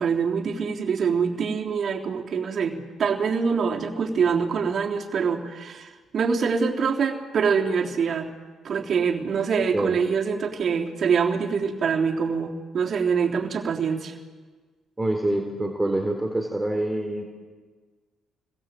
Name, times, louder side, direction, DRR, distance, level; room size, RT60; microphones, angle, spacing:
voice 1, 0.0-8.3 8.6-14.1, right 6 dB, 55° right, 1 dB, 3.7 m, -25 dB
voice 2, 9.6-10.0 15.0-17.2, right 1 dB, 10° right, 2 dB, 4.1 m, -26 dB
29.0 x 22.5 x 7.8 m, 1.4 s
cardioid pair, 100°, 0 cm